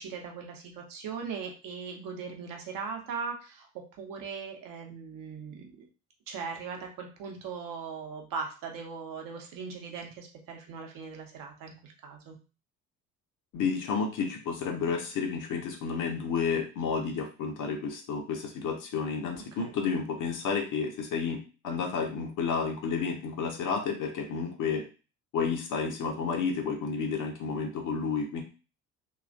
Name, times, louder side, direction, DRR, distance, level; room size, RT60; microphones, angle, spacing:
voice 1, 0.0-3.7 4.0-5.9 6.3-12.4 19.5-19.7, right 5 dB, 45° right, 2 dB, 0.9 m, -39 dB
voice 2, 13.5-24.8 25.3-28.4, left 5 dB, 40° left, 3 dB, 0.8 m, -31 dB
3.2 x 3.0 x 2.5 m, 0.33 s
figure-of-eight pair, 55°, 46 cm